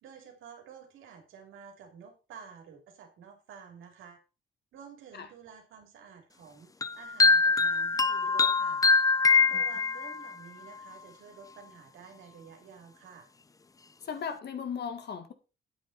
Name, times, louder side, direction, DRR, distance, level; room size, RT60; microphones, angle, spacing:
voice 1, 0.0-4.2 4.7-8.8 9.3-13.3, right 7 dB, 80° right, 3.3 m, -51 dB
sound 1, 6.8-10.3, left 4 dB, 15° left, 0.5 m, -23 dB
voice 2, 14.0-15.3, left 7 dB, 55° left, 1.9 m, -37 dB
8.9 x 8.7 x 4.2 m
cardioid pair, 90°, 20 cm